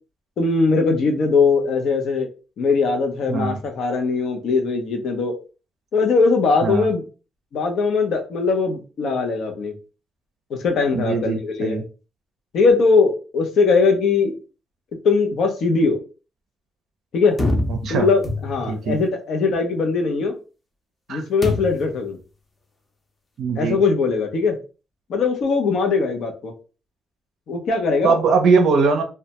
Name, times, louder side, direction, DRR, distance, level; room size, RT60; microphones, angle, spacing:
voice 1, 0.4-2.3 2.6-5.4 5.9-7.0 7.5-9.7 10.5-11.8 12.5-14.3 15.0-16.0 17.1-17.4 17.9-20.4 21.1-22.2 23.6-24.6 25.1-26.5 27.5-28.2, left 4 dB, 70° left, 3 dB, 0.5 m, -20 dB
voice 2, 10.9-11.8 17.7-18.1 18.7-19.0 21.1-21.2 23.4-23.8 28.0-29.0, right 4 dB, 70° right, 5 dB, 0.4 m, -20 dB
sound 1, 17.4-18.9 21.4-22.0, left 2 dB, 25° left, 0.6 m, -25 dB
2.1 x 2.1 x 2.8 m, 0.34 s
cardioid pair, 90°, 0 cm